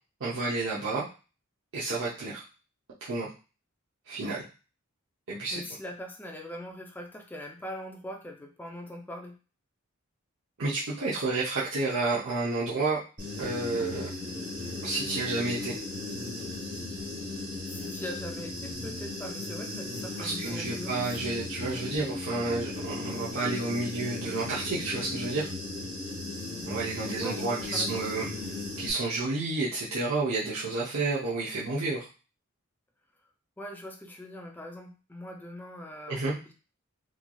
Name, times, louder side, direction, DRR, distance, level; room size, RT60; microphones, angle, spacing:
voice 1, 0.2-1.0 1.7-2.4 3.0-3.3 4.1-4.5 5.3-5.6 10.6-13.0 13.4-14.1 14.8-15.7 20.2-25.5 26.7-28.2 28.8-32.1 36.1-36.3, right 3 dB, 65° right, -8 dB, 0.6 m, -30 dB
voice 2, 5.5-9.4 17.7-21.2 27.2-28.1 33.6-36.5, left 1 dB, 10° left, 2 dB, 0.4 m, -41 dB
Human voice / Buzz, 13.2-28.9, left 2 dB, 40° right, 1.1 m, -37 dB
3.2 x 2.4 x 2.2 m, 0.34 s
head